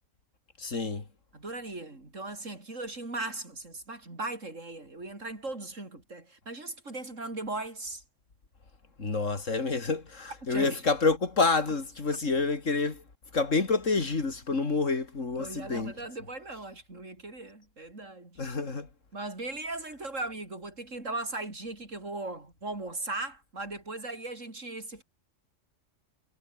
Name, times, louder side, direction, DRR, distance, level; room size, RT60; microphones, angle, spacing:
voice 1, 0.6-1.0 9.0-13.0 13.3-15.9 18.4-18.9, left 3 dB, 80° left, 3.2 m, -28 dB
voice 2, 1.3-8.0 10.4-10.8 15.4-18.4 19.1-25.0, right 2 dB, 85° right, 5.1 m, -38 dB
omnidirectional pair, 1.3 m